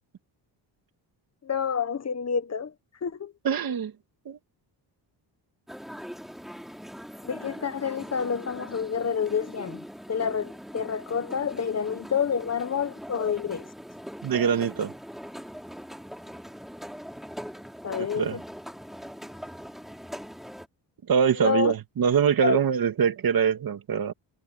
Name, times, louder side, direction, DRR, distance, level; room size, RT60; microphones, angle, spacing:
voice 1, 1.4-2.7 3.0-3.3 7.2-13.7 17.8-18.4 21.4-21.7 22.4-22.6, left 7 dB, 35° left, 1.2 m, -28 dB
voice 2, 3.4-3.9 4.3-4.4 14.2-14.9 18.0-18.4 21.1-24.1, right 7 dB, 50° right, 2.4 m, -24 dB
sound 1, 5.7-20.7, equal, ahead, 3.7 m, -41 dB
cardioid pair, 100°, 45 cm